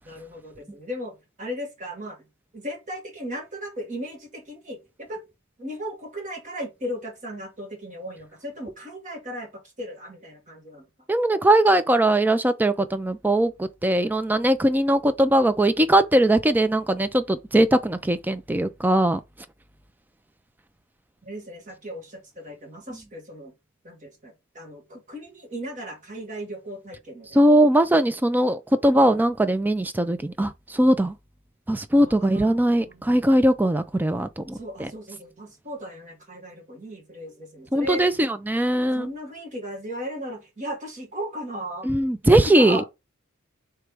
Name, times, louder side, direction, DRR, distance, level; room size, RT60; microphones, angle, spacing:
voice 1, 0.0-2.2 2.5-4.8 5.1-5.2 5.6-9.5 9.8-10.8 21.2-23.5 23.8-27.4 32.0-33.1 34.5-38.0 38.9-41.9 42.2-42.8, equal, 35° right, 1.6 m, -36 dB
voice 2, 11.1-19.2 27.3-31.1 31.7-34.9 37.7-39.1 41.8-42.8, right 1 dB, 10° right, 0.4 m, -20 dB
3.4 x 3.2 x 4.7 m
head